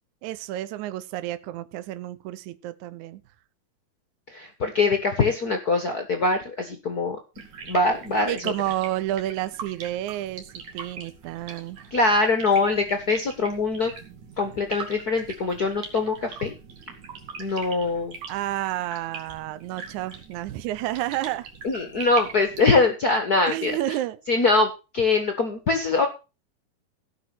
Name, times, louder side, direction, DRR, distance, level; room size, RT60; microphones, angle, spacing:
voice 1, 0.2-3.2 8.2-11.9 18.3-21.5 23.5-24.2, right 14 dB, 75° right, 13 dB, 1.8 m, -30 dB
voice 2, 4.3-7.2 7.7-8.5 11.9-13.9 14.4-16.5 17.4-18.2 21.6-23.8 24.3-26.1, left 3 dB, 70° left, 6 dB, 0.8 m, -23 dB
sound 1, 7.4-22.7, right 5 dB, 55° right, 3.5 m, -41 dB
16.5 x 5.9 x 6.1 m, 0.31 s
omnidirectional pair, 4.2 m